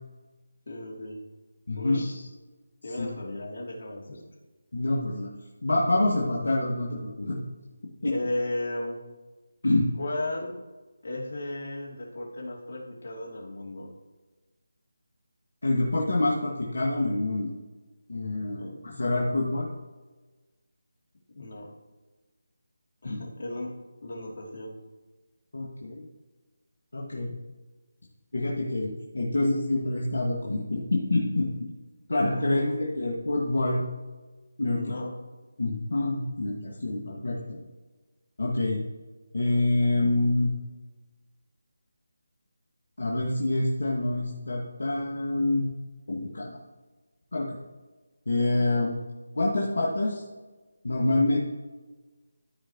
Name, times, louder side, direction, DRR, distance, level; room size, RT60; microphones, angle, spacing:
voice 1, 0.7-1.2 1.8-2.3 2.8-4.2 8.1-9.0 10.0-10.5 11.0-13.9 18.6-19.0 21.3-21.7 23.0-23.7 24.0-24.8 32.3-32.8 34.7-35.1, left 1 dB, 55° left, -2 dB, 2.8 m, -35 dB
voice 2, 1.7-2.0 3.0-3.1 4.7-5.3 5.6-7.4 8.0-8.1 9.6-9.9 15.6-17.5 18.1-19.7 23.0-23.2 25.5-26.0 26.9-27.4 28.3-31.5 32.1-33.8 34.6-35.0 35.6-37.6 38.4-38.8 39.3-40.5 43.0-45.7 46.1-46.6 47.3-47.6 48.3-49.0 49.4-50.2 50.8-51.4, left 2 dB, 70° left, -3 dB, 1.9 m, -26 dB
14.0 x 5.0 x 3.0 m, 1.3 s
figure-of-eight pair, 165°, 0 cm